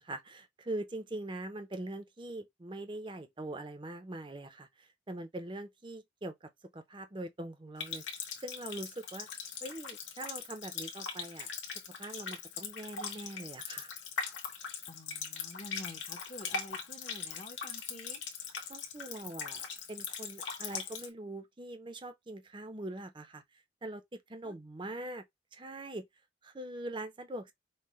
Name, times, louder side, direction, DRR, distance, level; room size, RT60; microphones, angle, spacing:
voice 1, 0.0-8.0 8.4-9.3 9.6-11.5 12.0-13.9 18.7-23.4 23.8-25.2 25.5-26.0 26.4-27.5, right 1 dB, 25° right, 0.6 m, -42 dB
Water tap faucet, 7.8-21.1, left 6 dB, 75° left, 1.1 m, -41 dB
voice 2, 14.9-18.2 24.4-24.6, left 1 dB, 35° left, 0.8 m, -49 dB
5.5 x 2.1 x 3.0 m
head